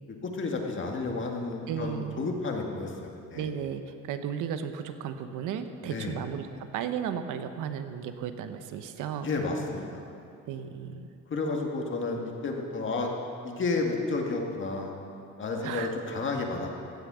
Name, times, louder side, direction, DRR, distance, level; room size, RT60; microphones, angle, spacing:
voice 1, 0.1-3.5 5.8-6.1 9.2-10.0 11.3-13.1 13.4-14.9 15.4-16.7, left 3 dB, 40° left, 1 dB, 2.0 m, -31 dB
voice 2, 1.7-2.2 3.3-9.3 10.5-11.1 15.6-15.9, right 8 dB, 75° right, 9 dB, 0.9 m, -34 dB
15.5 x 7.9 x 6.2 m, 2.6 s
cardioid pair, 100°, 31 cm